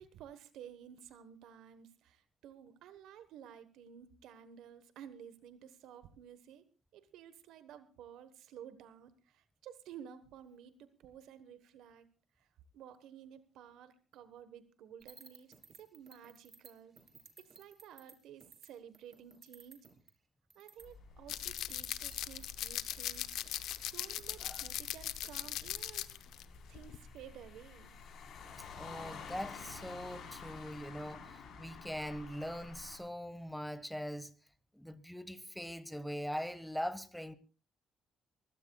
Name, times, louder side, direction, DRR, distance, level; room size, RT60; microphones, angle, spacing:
voice 1, 0.0-6.6 6.9-12.1 12.4-12.5 12.7-16.9 17.4-19.8 20.5-23.4 23.8-26.1 26.7-28.0, right 9 dB, 80° right, 1.2 m, -53 dB
sound 1, 15.0-18.1 18.4-18.7 18.9-20.1 20.5-20.9 21.3-25.9, right 5 dB, 40° right, 2.8 m, -57 dB
sound 2, 20.8-33.0, left 5 dB, 65° left, 4.1 m, -51 dB
sound 3, 21.3-26.4 26.8-27.0, left 13 dB, 80° left, 0.7 m, -39 dB
voice 2, 28.8-34.3 34.7-37.3, equal, ahead, 1.4 m, -42 dB
23.5 x 16.0 x 2.3 m
cardioid pair, 90°, 0 cm